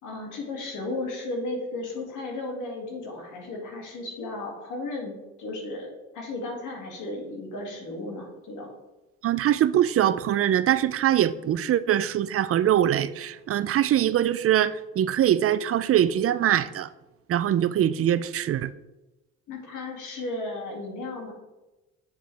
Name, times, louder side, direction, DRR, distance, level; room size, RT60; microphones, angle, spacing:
voice 1, 0.0-8.7 19.5-21.3, left 2 dB, 80° left, -1 dB, 2.3 m, -34 dB
voice 2, 9.2-16.9 17.3-18.7, right 11 dB, 50° right, 15 dB, 0.4 m, -23 dB
9.3 x 5.0 x 3.3 m, 1.0 s
cardioid pair, 90°, 30 cm